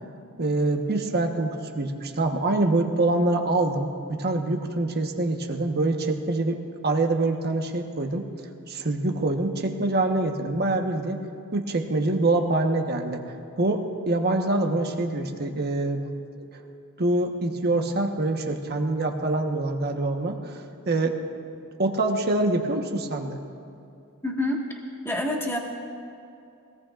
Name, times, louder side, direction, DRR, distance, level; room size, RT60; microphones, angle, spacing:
voice 1, 0.4-6.6 6.8-8.2 8.7-11.2 11.5-13.2 13.6-16.0 16.4-16.5 17.0-20.5 20.9-21.2 21.8-23.4, right 2 dB, 45° right, 3 dB, 1.2 m, -25 dB
voice 2, 24.2-24.6 25.0-25.6, left 1 dB, 10° left, -1 dB, 1.6 m, -26 dB
23.5 x 18.0 x 2.5 m, 2.7 s
head